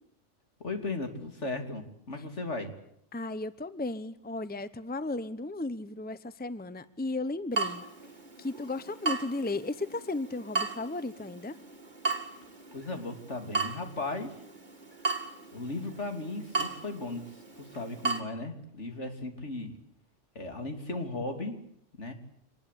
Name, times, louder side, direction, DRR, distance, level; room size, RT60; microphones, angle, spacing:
voice 1, 0.6-2.8 12.7-14.4 15.5-19.7 20.4-21.6 22.0-22.1, left 2 dB, 70° left, 7 dB, 3.5 m, -36 dB
voice 2, 3.1-7.8 8.4-11.6, left 2 dB, 10° left, 15 dB, 0.9 m, -35 dB
Water tap faucet / Drip, 7.5-18.2, right 4 dB, 40° right, 2.9 m, -36 dB
26.5 x 21.0 x 8.5 m, 0.70 s
omnidirectional pair, 1.2 m